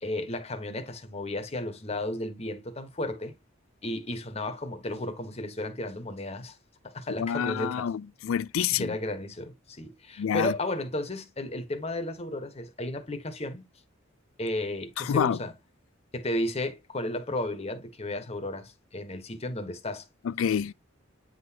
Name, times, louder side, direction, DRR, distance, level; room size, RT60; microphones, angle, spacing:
voice 1, 0.0-3.3 3.8-6.6 6.8-7.9 8.7-13.6 14.4-15.5 16.1-20.1, left 1 dB, 30° left, 1.2 m, -33 dB
voice 2, 7.2-8.9 10.2-10.5 15.0-15.4 20.3-20.7, left 8 dB, 90° left, 0.4 m, -27 dB
9.3 x 4.0 x 2.8 m
head